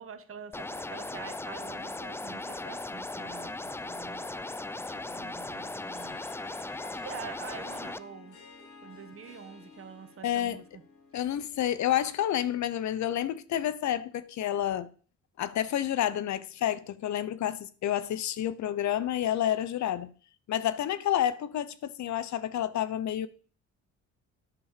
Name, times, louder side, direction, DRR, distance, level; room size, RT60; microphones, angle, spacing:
voice 1, 0.0-4.3 4.7-6.5 6.8-8.4 8.8-10.8, right 7 dB, 45° right, 1.5 m, -46 dB
sound 1, 0.5-8.0, left 2 dB, 10° left, 0.4 m, -38 dB
Harp, 5.7-11.5, left 5 dB, 90° left, 3.8 m, -53 dB
voice 2, 10.2-10.6 11.1-14.9 15.4-20.1 20.5-23.3, left 11 dB, 70° left, 0.9 m, -29 dB
10.5 x 5.4 x 6.8 m
cardioid pair, 90°, 30 cm